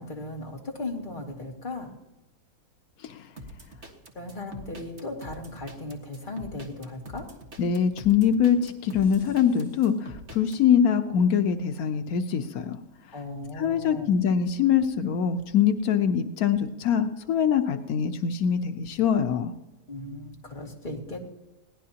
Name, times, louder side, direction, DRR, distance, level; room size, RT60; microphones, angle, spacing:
voice 1, 0.0-1.9 4.1-7.3 13.1-14.1 19.9-21.3, left 2 dB, 35° left, -1 dB, 2.4 m, -37 dB
sound 1, 3.4-10.6, right 1 dB, 50° right, 1.9 m, -44 dB
voice 2, 7.6-12.8 13.6-19.5, left 8 dB, 90° left, 7 dB, 1.3 m, -23 dB
22.0 x 17.0 x 2.9 m, 1.0 s
omnidirectional pair, 1.5 m